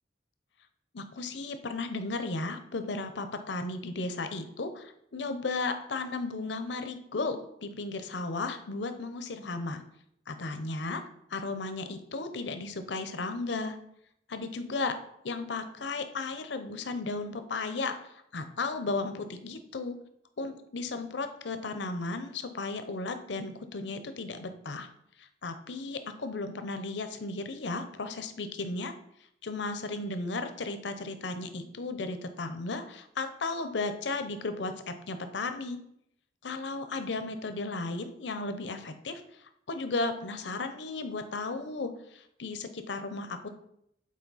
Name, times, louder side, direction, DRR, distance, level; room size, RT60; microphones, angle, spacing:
voice 1, 0.9-9.8 10.3-11.0 11.3-13.8 14.3-15.0 15.2-18.0 18.3-19.9 20.4-24.9 25.4-28.9 29.4-35.8 36.4-39.2 39.7-43.5, left 3 dB, 65° left, 9 dB, 0.7 m, -35 dB
8.5 x 4.2 x 4.1 m, 0.76 s
head